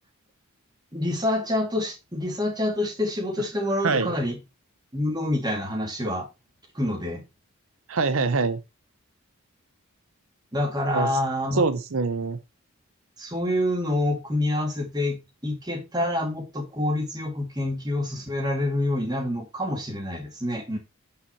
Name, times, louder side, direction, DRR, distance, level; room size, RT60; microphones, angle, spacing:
voice 1, 0.9-4.4 4.9-6.3 6.7-7.2 10.5-11.6 13.2-20.8, left 1 dB, 20° right, 2.4 m, -27 dB
voice 2, 7.9-8.6 10.9-11.1 11.5-12.4, right 4 dB, 70° right, 0.7 m, -24 dB
8.3 x 5.8 x 4.4 m
head